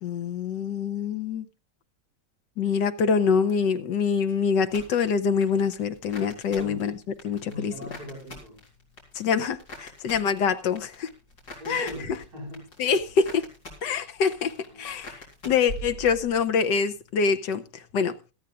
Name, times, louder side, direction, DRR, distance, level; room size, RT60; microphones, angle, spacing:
voice 1, 0.0-1.5 2.6-6.9 7.2-7.7 9.1-11.1 11.7-11.9 12.8-13.4 13.8-15.1 15.4-18.1, left 6 dB, 90° left, 1.6 m, -25 dB
sound 1, 4.6-16.5 16.8-17.4, equal, 70° left, 4.7 m, -45 dB
voice 2, 6.5-7.0 7.4-8.6 11.6-12.7 14.6-15.0, equal, 60° right, 6.7 m, -40 dB
17.5 x 14.0 x 2.4 m
omnidirectional pair, 1.8 m